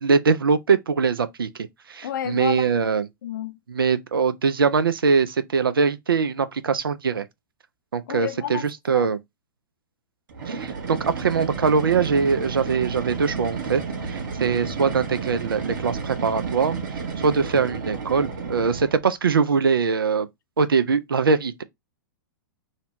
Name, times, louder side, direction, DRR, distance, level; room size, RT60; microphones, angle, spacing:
voice 1, 0.0-3.1 3.7-7.3 7.9-9.2 10.5-16.7 17.2-20.3 20.6-21.6, right 5 dB, 80° right, 0.4 m, -22 dB
voice 2, 2.0-2.7 3.2-3.6 8.1-8.7 8.9-9.1, left 10 dB, 60° left, 0.4 m, -30 dB
sound 1, 10.3-19.1, right 5 dB, 60° right, 0.9 m, -31 dB
2.7 x 2.1 x 2.8 m
figure-of-eight pair, 105°, 12 cm